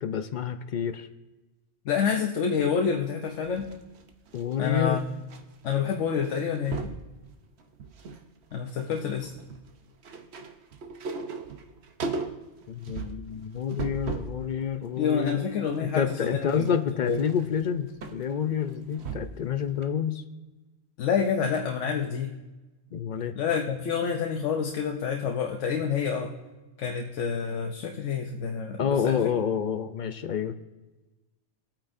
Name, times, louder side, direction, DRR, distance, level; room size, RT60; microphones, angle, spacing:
voice 1, 0.0-1.1 4.3-5.0 12.7-15.5 15.8-20.2 22.9-23.3 28.8-30.6, left 7 dB, 60° left, 9 dB, 0.5 m, -28 dB
voice 2, 1.8-3.7 4.6-5.0 5.6-6.8 8.5-9.3 15.0-16.7 17.0-17.2 21.0-22.4 23.3-26.3 26.8-29.3, left 6 dB, 90° left, 3 dB, 1.1 m, -28 dB
sound 1, 3.3-5.4 5.7-5.9 6.2-7.0 7.6-8.2 8.5-14.4 14.8-19.5 19.8-19.9, right 4 dB, 65° right, 1.0 m, -38 dB
21.0 x 8.9 x 2.6 m, 1.1 s
omnidirectional pair, 1.2 m